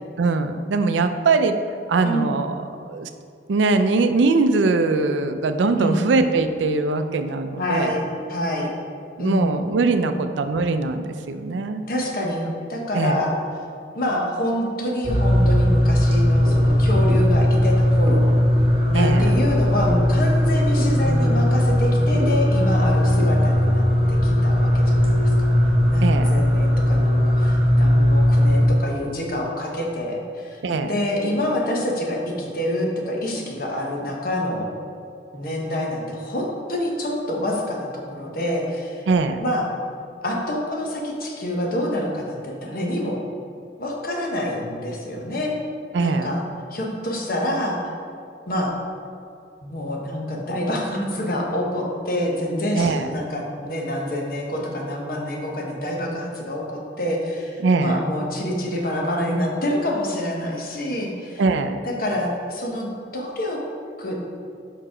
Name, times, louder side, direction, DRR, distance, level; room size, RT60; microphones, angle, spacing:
voice 1, 0.2-1.5 1.9-3.1 3.5-7.9 9.2-11.8 12.9-13.2 18.9-19.3 26.0-26.3 30.6-30.9 39.1-39.4 45.9-46.3 52.8-53.1 57.6-58.0 61.4-61.8, right 3 dB, 90° right, 9 dB, 0.4 m, -21 dB
voice 2, 2.0-2.3 5.8-6.0 7.6-8.7 9.2-9.5 10.0-10.2 11.9-13.3 13.9-18.3 18.9-25.5 25.9-34.7 35.3-39.0 39.4-39.7 40.2-43.2 43.8-45.6 46.0-46.4 46.7-47.8 48.5-48.7 49.6-61.4 61.8-62.9 63.1-63.6 64.0-64.2, left 1 dB, 55° left, -1 dB, 1.0 m, -26 dB
sound 1, 15.0-28.7, left 1 dB, 30° right, 1.0 m, -18 dB
5.5 x 4.7 x 4.9 m, 2.4 s
head